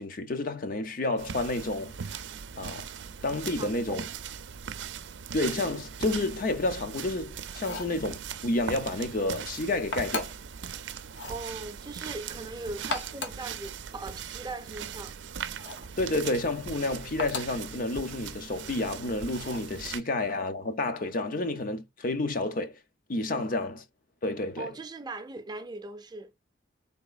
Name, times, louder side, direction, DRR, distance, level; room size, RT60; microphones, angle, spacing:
voice 1, 0.0-2.1 2.6-2.9 3.2-4.1 5.3-10.3 16.0-22.7 23.1-23.8 24.2-24.7, left 2 dB, 50° left, 0.7 m, -30 dB
sound 1, 1.2-20.0, right 7 dB, 85° right, 0.5 m, -40 dB
voice 2, 3.6-4.0 7.7-7.8 11.3-15.1 23.4-23.6 24.6-26.3, right 2 dB, 25° right, 0.5 m, -40 dB
sound 2, 7.5-8.0 9.9-10.5 11.1-11.4 12.7-13.5 15.6-15.9 17.2-17.6 19.3-19.7, left 2 dB, 90° left, 1.0 m, -37 dB
4.0 x 3.6 x 2.3 m
head